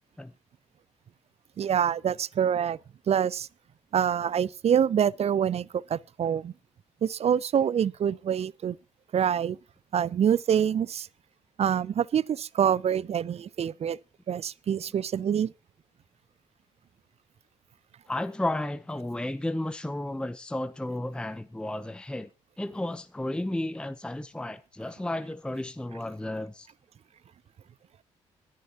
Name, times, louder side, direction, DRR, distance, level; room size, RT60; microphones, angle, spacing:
voice 1, 1.6-2.8 3.1-3.5 3.9-6.5 7.0-8.8 9.1-9.6 9.9-11.1 11.6-14.0 14.3-15.5, right 8 dB, 40° right, 0.5 m, -26 dB
voice 2, 18.1-22.3 22.6-26.7, left 1 dB, 5° left, 0.7 m, -33 dB
20.5 x 10.5 x 2.9 m
hypercardioid pair, 45°, 16 cm